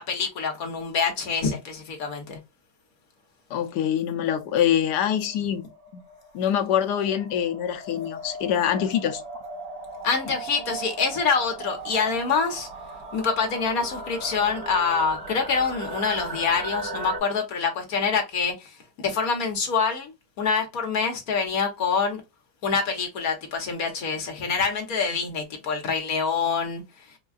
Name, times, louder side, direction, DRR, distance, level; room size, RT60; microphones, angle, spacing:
voice 1, 0.0-2.4 10.0-12.7 13.1-20.1 20.4-22.2 22.6-27.2, left 5 dB, 60° left, 1.5 m, -26 dB
voice 2, 3.5-5.6 5.9-6.0 6.3-9.2, left 9 dB, 75° left, 1.2 m, -24 dB
sound 1, 4.4-17.2, right 2 dB, 60° right, 2.0 m, -38 dB
4.4 x 2.3 x 2.3 m
omnidirectional pair, 1.9 m